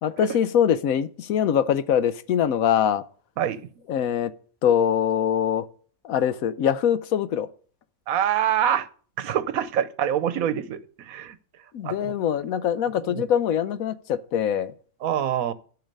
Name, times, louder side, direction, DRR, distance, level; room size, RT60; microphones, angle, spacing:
voice 1, 0.0-3.0 3.9-4.3 4.6-5.7 6.0-7.5 11.7-14.7, left 9 dB, 75° left, 1.1 m, -23 dB
voice 2, 8.1-8.9 9.2-11.4 11.8-12.1 13.0-13.2 15.0-15.5, right 10 dB, 75° right, 1.2 m, -25 dB
12.5 x 5.6 x 5.3 m
omnidirectional pair, 1.5 m